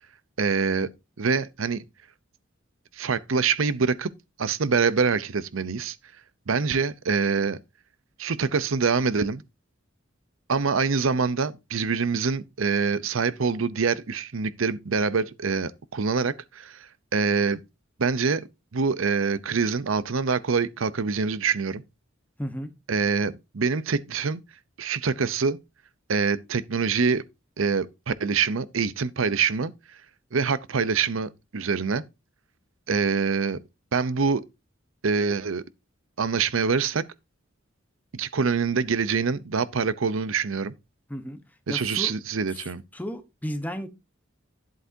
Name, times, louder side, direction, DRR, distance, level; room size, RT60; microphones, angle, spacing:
voice 1, 0.4-0.9 1.2-1.8 2.9-4.1 4.4-6.0 6.5-7.6 8.2-9.4 10.5-17.6 18.0-18.5 18.7-21.8 22.9-24.4 24.8-25.6 26.1-27.2 27.6-29.7 30.3-32.0 32.9-33.6 33.9-34.4 35.0-35.6 36.2-37.0 38.1-40.7 41.7-42.8, right 5 dB, 85° right, 0.7 m, -25 dB
voice 2, 22.4-22.7 41.1-41.4 41.7-42.1 42.5-43.9, equal, 10° left, 1.1 m, -34 dB
10.5 x 8.0 x 2.8 m
head